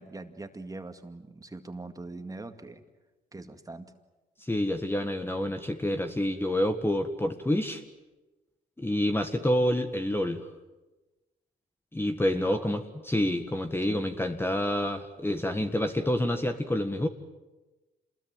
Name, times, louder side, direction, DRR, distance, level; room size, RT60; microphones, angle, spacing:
voice 1, 0.0-2.8 3.3-3.9 12.4-12.7 13.9-14.0, right 2 dB, 15° right, 7 dB, 2.2 m, -42 dB
voice 2, 4.4-7.8 8.8-10.5 11.9-17.1, left 1 dB, 10° left, 6 dB, 1.7 m, -28 dB
27.0 x 21.0 x 9.3 m, 1.1 s
cardioid pair, 90°, 20 cm